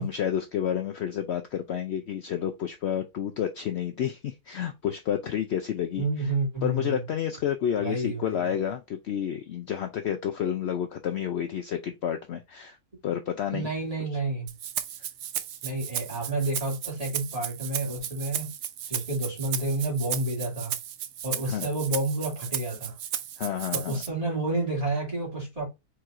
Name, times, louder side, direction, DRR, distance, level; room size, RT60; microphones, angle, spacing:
voice 1, 0.0-6.3 6.6-12.8 13.0-13.7 21.5-21.7 23.4-24.0, left 9 dB, 75° left, 0.6 m, -30 dB
voice 2, 6.0-7.0 7.8-8.5 13.5-14.5 15.6-18.5 18.9-20.8 21.2-23.0 23.7-25.7, right 2 dB, 25° right, 2.4 m, -30 dB
Rattle (instrument), 14.5-24.1, right 10 dB, 75° right, 0.6 m, -35 dB
4.7 x 4.4 x 2.5 m
omnidirectional pair, 1.7 m